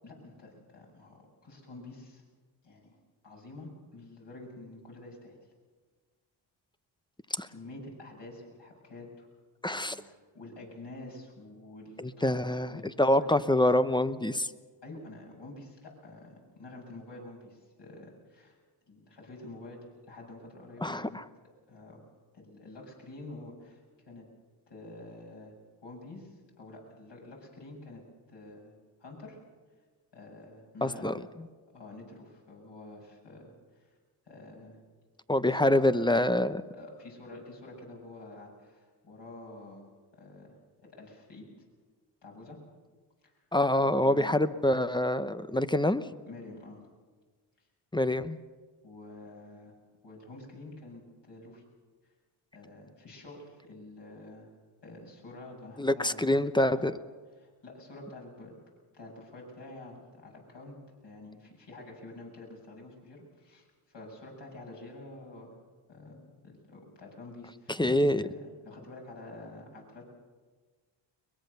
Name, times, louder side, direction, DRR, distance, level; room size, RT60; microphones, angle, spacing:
voice 1, 0.0-2.2 2.6-3.0 3.2-5.4 7.5-9.3 9.7-13.4 14.8-18.6 18.9-19.8 20.1-21.2 21.7-22.0 22.3-23.8 24.1-24.3 24.7-25.5 25.8-28.0 28.3-28.7 29.0-29.4 30.1-31.2 31.7-33.9 34.3-34.8 35.3-35.9 36.7-39.9 40.1-40.5 40.8-41.5 42.2-42.6 43.2-43.3 43.8-44.4 46.3-46.8 48.8-49.7 50.0-51.6 52.5-54.5 54.8-56.4 56.7-56.9 57.4-58.5 58.9-60.8 61.0-65.6 65.9-67.8 68.2-70.1, left 2 dB, 55° left, -1 dB, 7.9 m, -48 dB
voice 2, 9.6-10.0 12.0-12.7 13.0-14.5 20.8-21.2 30.8-31.1 35.3-36.6 43.5-46.0 47.9-48.4 55.8-57.0 67.8-68.3, left 1 dB, 10° left, 13 dB, 0.9 m, -26 dB
22.5 x 20.5 x 6.8 m, 1.4 s
cardioid pair, 70°, 49 cm